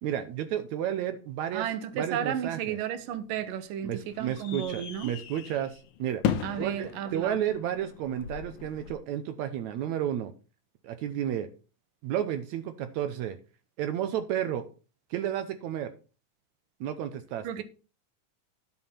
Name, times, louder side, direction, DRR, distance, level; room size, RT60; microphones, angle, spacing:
voice 1, 0.0-1.7 1.9-2.8 3.8-6.2 6.6-10.3 10.8-11.5 12.0-13.4 13.8-14.6 15.1-15.9 16.8-17.5, right 10 dB, 75° right, 1.9 m, -32 dB
voice 2, 1.5-5.1 6.4-7.4 17.4-17.6, right 9 dB, 90° right, 2.6 m, -33 dB
sound 1, 2.9-8.9, left 9 dB, 75° left, 2.4 m, -37 dB
11.0 x 6.2 x 4.3 m
omnidirectional pair, 3.8 m